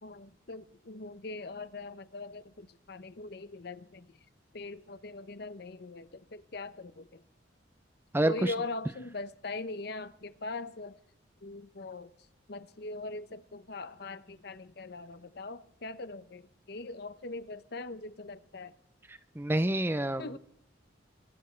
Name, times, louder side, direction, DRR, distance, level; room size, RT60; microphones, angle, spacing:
voice 1, 0.0-4.1 4.5-7.2 8.2-11.0 11.4-12.1 12.5-18.7 20.2-20.4, left 3 dB, 55° left, 0.8 m, -41 dB
voice 2, 8.1-8.5 19.1-20.4, right 1 dB, 10° right, 0.5 m, -28 dB
23.5 x 11.5 x 4.5 m
head